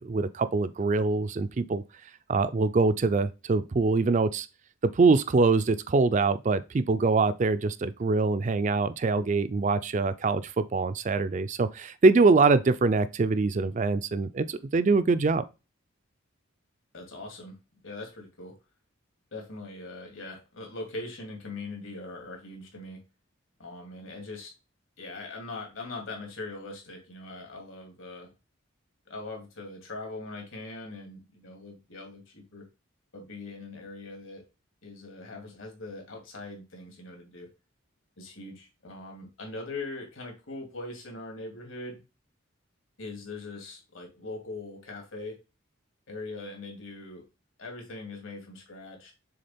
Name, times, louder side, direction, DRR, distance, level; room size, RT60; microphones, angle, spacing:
voice 1, 0.0-1.8 2.3-4.5 4.8-15.4, right 3 dB, 35° right, 0.4 m, -24 dB
voice 2, 16.9-17.6 17.8-18.5 19.3-23.0 23.6-24.5 25.0-28.3 29.1-32.7 33.1-34.4 34.8-37.5 38.2-42.0 43.0-45.4 46.1-47.2 47.6-49.1, left 2 dB, 75° left, 2.4 m, -41 dB
6.5 x 3.7 x 4.3 m
head